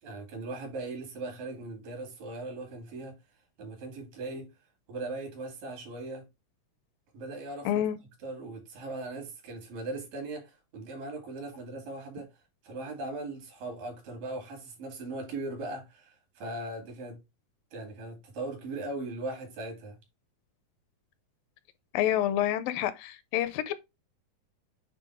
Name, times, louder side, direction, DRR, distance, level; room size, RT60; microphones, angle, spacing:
voice 1, 0.0-3.2 3.6-4.5 4.9-6.3 7.1-7.8 8.2-12.3 12.6-17.2 17.7-20.0, right 2 dB, 70° right, 4.3 m, -39 dB
voice 2, 7.7-8.0 21.9-23.7, left 12 dB, 80° left, 2.2 m, -28 dB
9.1 x 3.6 x 3.4 m
omnidirectional pair, 4.1 m